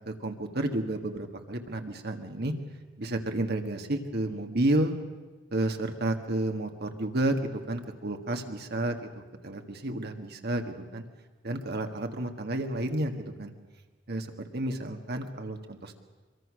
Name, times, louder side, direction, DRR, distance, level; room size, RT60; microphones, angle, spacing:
voice 1, 0.1-2.5 3.0-5.0 5.5-7.4 7.7-9.1 9.4-11.0 11.4-13.1 13.4-13.5 14.1-14.3 14.5-15.9, right 1 dB, 55° right, 5 dB, 1.9 m, -31 dB
24.0 x 23.0 x 6.4 m, 1.2 s
head